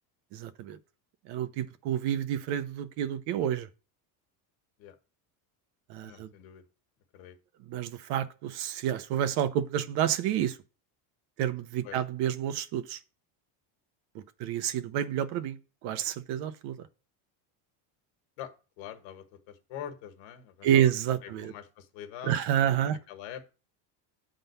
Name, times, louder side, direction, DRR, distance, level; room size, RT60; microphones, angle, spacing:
voice 1, 0.3-0.8 1.3-3.7 5.9-6.3 7.7-10.6 11.4-13.0 14.1-15.6 15.8-16.9 20.6-21.5 22.2-23.0, right 10 dB, 55° right, 0.8 m, -29 dB
voice 2, 6.0-6.6 7.1-7.4 11.8-12.0 18.4-20.9 21.2-23.5, left 10 dB, 65° left, 1.5 m, -44 dB
9.0 x 3.9 x 6.8 m
cardioid pair, 170°, 48 cm